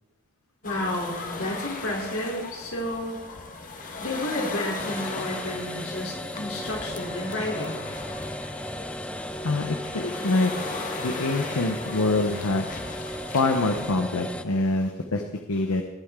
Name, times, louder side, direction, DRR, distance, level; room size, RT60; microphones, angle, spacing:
voice 1, 0.6-3.2 4.0-7.8, left 1 dB, 70° left, -1 dB, 3.6 m, -31 dB
sound 1, 0.6-13.9, left 3 dB, 40° left, 1.5 m, -38 dB
sound 2, 4.8-14.4, left 1 dB, 5° left, 0.4 m, -36 dB
voice 2, 9.4-10.5 11.0-12.8 13.3-15.2 15.5-15.8, left 2 dB, 85° left, 5 dB, 0.9 m, -25 dB
19.5 x 8.9 x 3.7 m, 1.1 s
head